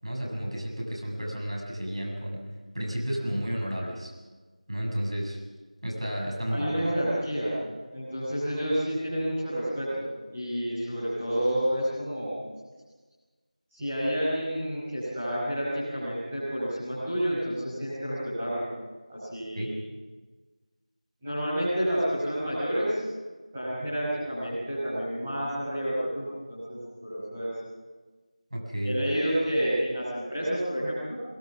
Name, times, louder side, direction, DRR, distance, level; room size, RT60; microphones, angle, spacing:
voice 1, 0.0-4.1 4.7-5.4 5.8-6.9 19.6-19.7 28.5-29.0, equal, 50° right, 0 dB, 6.9 m, -32 dB
voice 2, 6.5-7.5 7.9-10.0 10.3-12.4 13.7-18.7 19.1-19.7 21.2-23.0 23.5-27.5 28.8-31.2, equal, 5° right, -13 dB, 5.6 m, -29 dB
23.5 x 22.5 x 6.2 m, 1.3 s
figure-of-eight pair, 180°, 4 cm